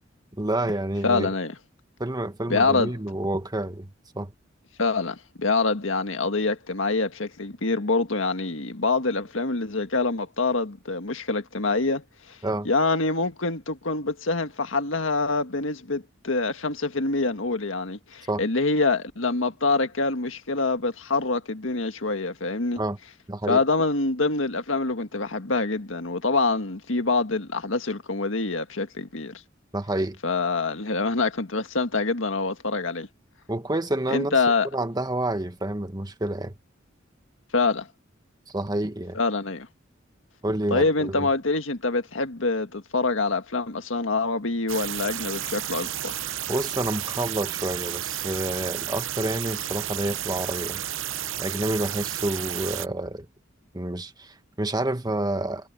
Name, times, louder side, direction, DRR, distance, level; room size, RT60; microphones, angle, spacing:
voice 1, 0.3-1.3 2.0-4.3 12.4-12.7 18.3-18.4 22.8-23.0 23.3-23.6 29.7-30.2 33.5-34.4 34.7-36.5 38.5-39.2 40.4-41.3 46.5-50.8 51.4-53.3 53.7-55.7, right 1 dB, 20° right, 1.5 m, -29 dB
voice 2, 1.0-1.6 2.5-2.9 4.8-12.0 12.3-12.4 12.7-22.8 23.5-29.4 30.2-33.1 34.1-34.7 37.5-37.9 39.1-39.7 40.7-46.2, left 3 dB, 85° left, 1.7 m, -25 dB
sound 1, 44.7-52.9, right 11 dB, 80° right, 0.8 m, -32 dB
head